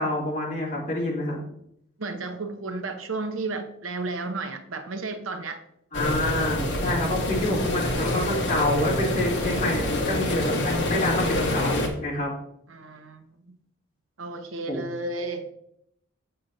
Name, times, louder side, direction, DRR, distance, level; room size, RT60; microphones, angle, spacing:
voice 1, 0.0-1.4 5.9-12.3 14.7-14.9, left 1 dB, 40° left, -5 dB, 2.6 m, -27 dB
voice 2, 2.0-5.6 12.7-13.6 14.2-15.5, right 3 dB, 90° right, 6 dB, 0.8 m, -33 dB
sound 1, 5.9-11.9, left 1 dB, 65° left, 1.4 m, -26 dB
7.6 x 7.2 x 2.7 m, 0.72 s
head